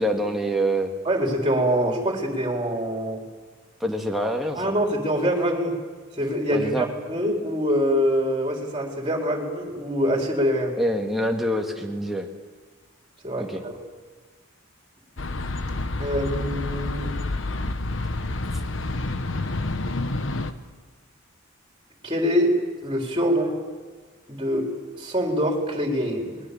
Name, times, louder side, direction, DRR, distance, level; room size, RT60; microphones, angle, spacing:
voice 1, 0.0-0.9 3.8-4.7 6.5-6.9 10.8-12.3 13.4-13.6, equal, ahead, 0 dB, 1.9 m, -25 dB
voice 2, 1.0-3.2 4.6-5.8 6.2-10.7 13.2-13.7 16.0-17.1 22.0-22.6 22.8-23.6 24.3-24.7 24.9-26.4, equal, 25° right, 1 dB, 4.1 m, -24 dB
sound 1, 15.2-20.5, left 2 dB, 65° left, 1.2 m, -28 dB
28.0 x 20.5 x 7.1 m, 1.4 s
head